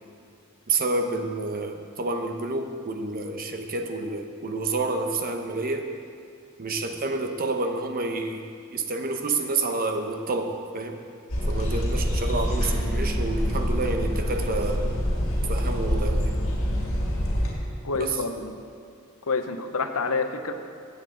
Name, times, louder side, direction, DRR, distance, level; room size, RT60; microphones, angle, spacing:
voice 1, 0.7-5.9 6.6-8.5 8.7-11.0 11.5-14.8 15.5-16.4 18.0-18.2, right 3 dB, 45° right, 5 dB, 0.8 m, -29 dB
sound 1, 11.3-17.5, equal, 70° left, 2.3 m, -26 dB
voice 2, 17.8-18.6 19.2-20.5, left 4 dB, 90° left, 8 dB, 0.7 m, -28 dB
15.5 x 8.1 x 3.7 m, 2.3 s
head